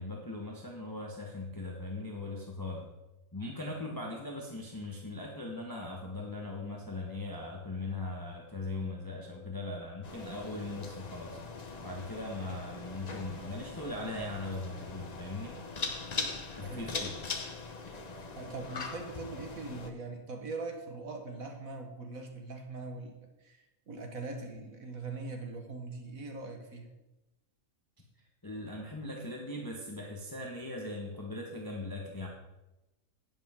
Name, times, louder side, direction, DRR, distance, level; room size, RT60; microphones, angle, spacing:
voice 1, 0.0-2.9 3.3-11.4 11.8-15.6 16.5-17.2 28.4-32.3, left 2 dB, 15° left, -2 dB, 1.2 m, -39 dB
sound 1, 10.0-19.9, left 4 dB, 35° left, 0.7 m, -41 dB
voice 2, 18.4-26.9, right 3 dB, 65° right, 3 dB, 1.7 m, -41 dB
10.5 x 9.9 x 3.7 m, 1.0 s
omnidirectional pair, 1.6 m